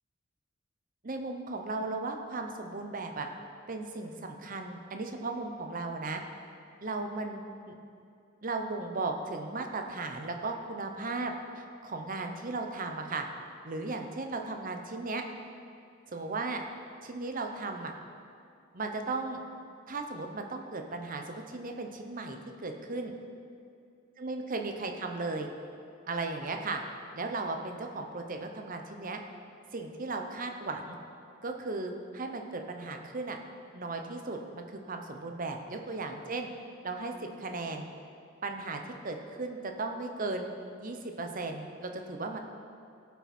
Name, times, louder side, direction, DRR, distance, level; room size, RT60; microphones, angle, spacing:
voice 1, 1.0-3.3 3.7-6.2 6.8-7.7 8.4-13.2 13.6-15.2 16.1-16.6 17.0-17.9 18.7-19.4 19.9-23.1 24.2-25.5 26.1-26.8 27.1-29.2 29.7-31.0 31.4-33.4 33.7-36.5 36.8-37.9 38.4-40.5 40.8-42.4, right 3 dB, 45° right, 4 dB, 0.9 m, -36 dB
16.5 x 5.8 x 4.4 m, 2.5 s
head